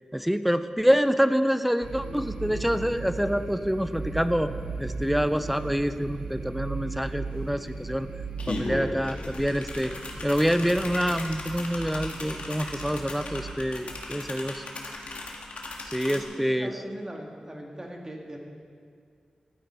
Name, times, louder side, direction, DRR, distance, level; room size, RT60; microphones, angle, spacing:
voice 1, 0.1-4.5 4.8-8.1 8.5-9.9 10.2-14.6 15.9-16.7, equal, 5° right, 11 dB, 0.4 m, -26 dB
sound 1, 1.8-13.5, right 4 dB, 90° right, 1.3 m, -37 dB
sound 2, 7.3-7.4 7.7-16.2, left 2 dB, 75° left, 1.4 m, -37 dB
voice 2, 16.1-18.4, right 1 dB, 25° right, 1 dB, 1.6 m, -40 dB
12.5 x 9.1 x 4.5 m, 2.1 s
wide cardioid pair, 85°, 2 cm